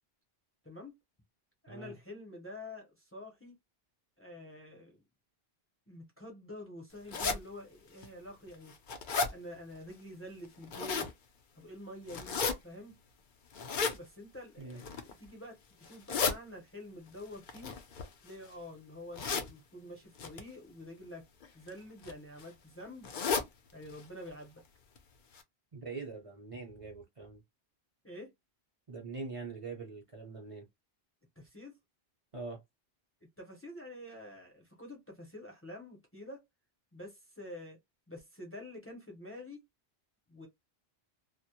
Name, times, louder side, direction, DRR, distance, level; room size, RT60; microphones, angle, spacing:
voice 1, 0.6-0.9 1.6-3.6 4.2-5.0 5.9-8.7 9.2-11.1 11.5-13.0 13.9-17.7 18.2-21.2 21.5-23.1 23.7-24.6 28.0-28.3 31.4-31.8 33.2-36.4 36.9-37.8 38.1-39.6 40.3-40.5, left 1 dB, 15° left, 0.6 m, -48 dB
sound 1, 7.1-7.4 8.0-8.1 8.5-9.3 10.4-11.1 12.1-12.5 13.5-14.0 14.7-15.1 15.8-16.3 17.5-18.5 19.1-19.5 20.2-20.4 21.4-21.7 22.0-22.1 22.4-22.5 23.0-23.5 23.9-24.0 24.3-24.4 25.0-25.1 25.4-25.5, left 5 dB, 60° left, 0.6 m, -33 dB
voice 2, 25.7-27.4 28.9-30.7 32.3-32.6, right 4 dB, 40° right, 0.7 m, -43 dB
2.1 x 2.0 x 2.8 m
omnidirectional pair, 1.1 m